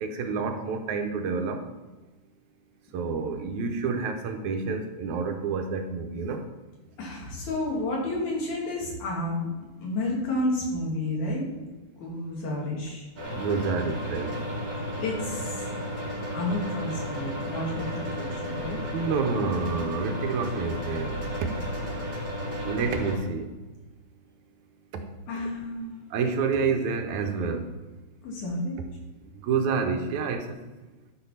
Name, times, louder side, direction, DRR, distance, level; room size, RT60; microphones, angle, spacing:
voice 1, 0.0-1.7 2.9-6.5 13.3-14.3 18.9-21.2 21.4-21.5 22.6-23.5 24.9-25.1 26.1-27.7 29.4-30.6, right 5 dB, 80° right, 5 dB, 2.2 m, -28 dB
voice 2, 7.0-9.5 9.8-11.7 12.0-13.1 15.0-15.7 16.3-18.8 25.3-26.1 28.2-28.8, left 1 dB, 85° left, -3 dB, 3.8 m, -31 dB
sound 1, 13.2-23.2, equal, 40° right, 2.9 m, -33 dB
11.5 x 4.4 x 5.6 m, 1.2 s
omnidirectional pair, 3.4 m